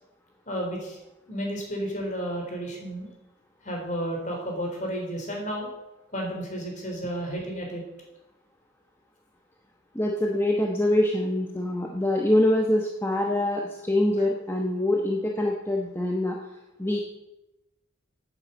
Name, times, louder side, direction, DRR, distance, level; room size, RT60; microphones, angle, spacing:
voice 1, 0.5-1.0 1.3-3.1 3.6-5.7 6.1-7.8, equal, 40° left, 0 dB, 3.9 m, -32 dB
voice 2, 9.9-16.4 16.8-17.0, left 1 dB, 10° left, 0 dB, 1.0 m, -24 dB
9.6 x 9.0 x 8.1 m, 0.97 s
head